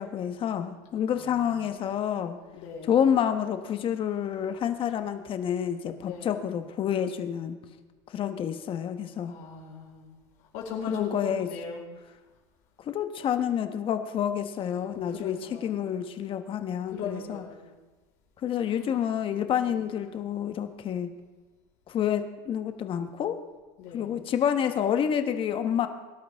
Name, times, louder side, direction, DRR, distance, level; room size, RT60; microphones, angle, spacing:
voice 1, 0.0-2.4 2.9-7.6 8.1-9.3 10.9-11.5 12.9-17.4 18.4-21.1 21.9-23.4 23.9-25.9, left 9 dB, 35° left, 8 dB, 1.2 m, -28 dB
voice 2, 1.1-1.7 2.5-2.9 6.0-6.4 9.3-10.1 10.5-11.8 14.9-15.8 16.9-17.7 18.7-18.8 19.7-19.9 23.8-24.2, left 6 dB, 60° left, -2 dB, 4.5 m, -39 dB
23.5 x 12.0 x 3.5 m, 1.2 s
supercardioid pair, 130°, 15 cm